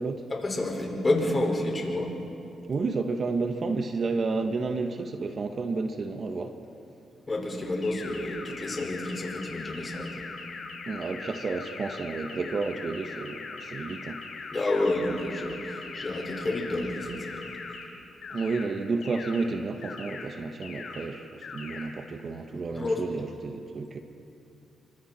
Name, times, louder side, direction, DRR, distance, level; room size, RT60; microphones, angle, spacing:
voice 1, 0.3-2.1 7.3-10.2 14.5-17.5 22.7-23.0, left 2 dB, 30° left, 0 dB, 5.3 m, -29 dB
voice 2, 2.7-6.6 10.9-14.2 18.3-24.0, right 4 dB, 45° right, 6 dB, 1.5 m, -31 dB
sound 1, 7.8-17.8 18.2-18.6 19.0-19.4 19.8-20.2 20.6-21.0 21.4-21.8, left 4 dB, 65° left, 5.9 m, -40 dB
29.0 x 25.0 x 4.4 m, 2.7 s
cardioid pair, 80°, 0 cm